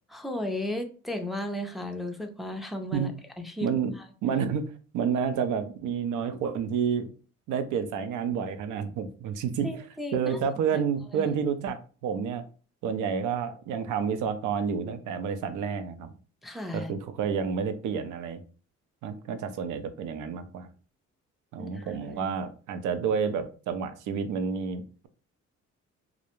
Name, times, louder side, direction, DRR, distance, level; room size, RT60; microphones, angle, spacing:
voice 1, 0.1-3.1 3.4-3.7 4.0-4.1 9.6-10.3 11.1-11.3 16.4-16.9 21.6-22.3, left 1 dB, ahead, 4 dB, 0.4 m, -35 dB
voice 2, 3.6-3.9 4.2-7.1 7.5-9.7 10.1-12.4 12.8-16.1 16.7-18.4 19.0-20.7 21.5-25.1, right 7 dB, 85° right, 10 dB, 0.5 m, -29 dB
2.4 x 2.0 x 2.9 m, 0.38 s
cardioid pair, 90°, 30 cm